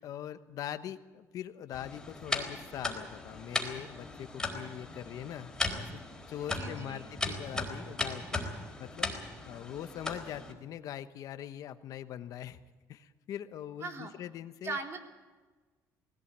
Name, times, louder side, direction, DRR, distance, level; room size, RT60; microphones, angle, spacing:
voice 1, 0.0-6.0 6.3-8.4 8.8-9.1 9.5-12.6 12.9-14.8, left 11 dB, 60° left, 10 dB, 1.2 m, -42 dB
sound 1, 1.7-10.5, left 2 dB, 10° left, 4.1 m, -37 dB
voice 2, 6.5-7.1 13.8-14.1 14.6-15.0, right 3 dB, 40° right, 3 dB, 3.4 m, -39 dB
20.0 x 17.0 x 8.8 m, 1.3 s
cardioid pair, 120°, 7 cm